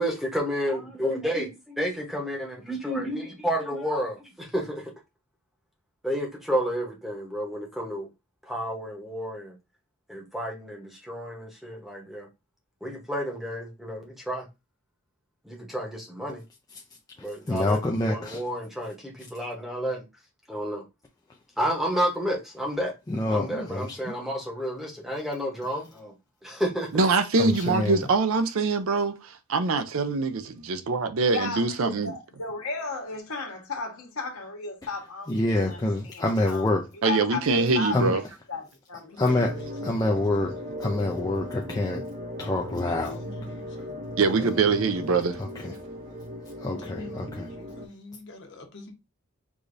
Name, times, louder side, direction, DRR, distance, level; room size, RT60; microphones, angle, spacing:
voice 1, 0.0-1.5 1.8-4.9 6.0-8.1 8.5-9.5 10.1-12.3 12.8-14.5 15.4-16.4 17.2-17.8 18.1-20.0 20.5-20.8 21.6-22.9 23.3-26.1 26.4-26.9, equal, ahead, 0.8 m, -30 dB
voice 2, 17.2-18.4 23.1-24.1 27.4-28.1 34.8-34.9 35.3-36.9 37.9-38.2 39.2-39.6 39.8-40.5 40.8-42.1 42.4-43.2 44.4-44.5 45.4-45.7 46.6-47.5, left 2 dB, 15° left, 0.3 m, -27 dB
voice 3, 26.9-32.1 37.0-38.2 44.2-45.4, right 4 dB, 65° right, 0.5 m, -24 dB
voice 4, 31.3-35.3 35.6-35.8 36.1-36.7 37.0-38.2 38.5-39.2, left 4 dB, 75° left, 1.2 m, -34 dB
voice 5, 39.0-40.8 42.6-44.7 45.2-45.7 46.7-48.9, left 2 dB, 50° left, 0.9 m, -45 dB
sound 1, 39.3-47.9, equal, 30° right, 0.7 m, -38 dB
4.8 x 2.6 x 2.5 m
head